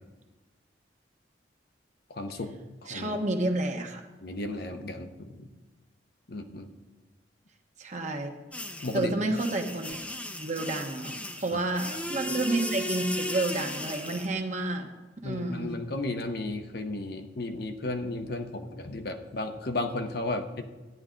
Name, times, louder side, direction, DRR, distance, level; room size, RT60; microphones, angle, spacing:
voice 1, 2.1-3.2 4.2-5.5 6.3-6.7 8.8-9.1 11.5-11.6 15.2-20.6, left 2 dB, 60° left, 6 dB, 0.9 m, -34 dB
voice 2, 2.9-4.1 7.8-8.3 8.9-10.0 10.4-14.9 15.2-15.7, right 2 dB, 40° right, 3 dB, 1.2 m, -30 dB
sound 1, 8.5-14.3, left 1 dB, 5° left, 0.6 m, -36 dB
13.5 x 9.5 x 3.8 m, 1.2 s
head